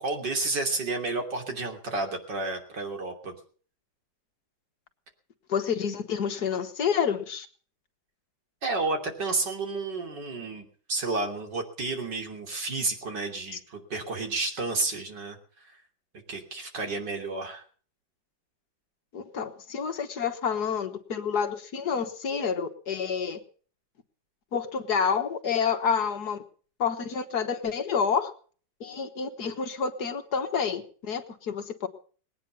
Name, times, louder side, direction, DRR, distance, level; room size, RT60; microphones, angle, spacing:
voice 1, 0.0-3.4 8.6-15.7 16.3-17.6, right 3 dB, 65° right, 3 dB, 3.7 m, -31 dB
voice 2, 5.5-7.5 13.5-13.6 19.1-23.4 24.5-26.4 26.8-28.3 28.8-31.9, left 6 dB, 60° left, 7 dB, 1.9 m, -29 dB
20.0 x 9.5 x 7.0 m, 0.44 s
omnidirectional pair, 2.0 m